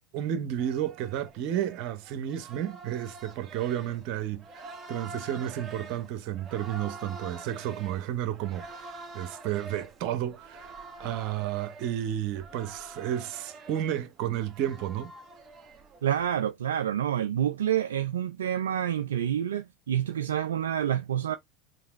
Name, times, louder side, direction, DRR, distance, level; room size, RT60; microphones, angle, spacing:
voice 1, 0.1-4.4 4.9-10.7 11.0-15.1, right 11 dB, 60° right, 0.9 m, -32 dB
sound 1, 0.6-16.4, right 3 dB, 35° right, 1.4 m, -46 dB
voice 2, 16.0-21.4, right 10 dB, 80° right, 0.3 m, -28 dB
5.0 x 3.2 x 3.1 m
hypercardioid pair, 80°, 0 cm